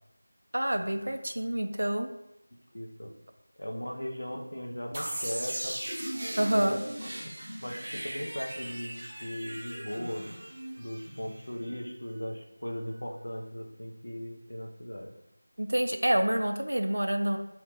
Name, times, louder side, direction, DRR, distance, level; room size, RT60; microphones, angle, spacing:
voice 1, 0.5-2.1 6.4-6.8 15.6-17.4, right 1 dB, 85° right, 6 dB, 0.4 m, -27 dB
voice 2, 2.7-3.1 3.6-5.8 6.5-6.9 7.6-10.4 10.8-15.1, equal, 80° left, 1 dB, 0.8 m, -38 dB
sound 1, 4.9-11.7, right 1 dB, 30° right, 0.7 m, -38 dB
2.8 x 2.8 x 3.6 m, 0.88 s
figure-of-eight pair, 180°, 0 cm